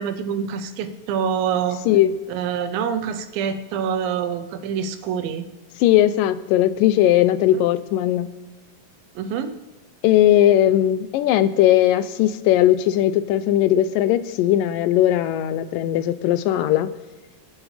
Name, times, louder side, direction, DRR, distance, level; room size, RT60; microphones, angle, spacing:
voice 1, 0.0-1.8 2.3-5.5 9.2-9.6, right 7 dB, 80° right, 9 dB, 2.6 m, -26 dB
voice 2, 5.8-8.3 10.0-16.9, left 12 dB, 80° left, 13 dB, 2.1 m, -18 dB
27.5 x 9.8 x 3.3 m, 1.2 s
omnidirectional pair, 4.1 m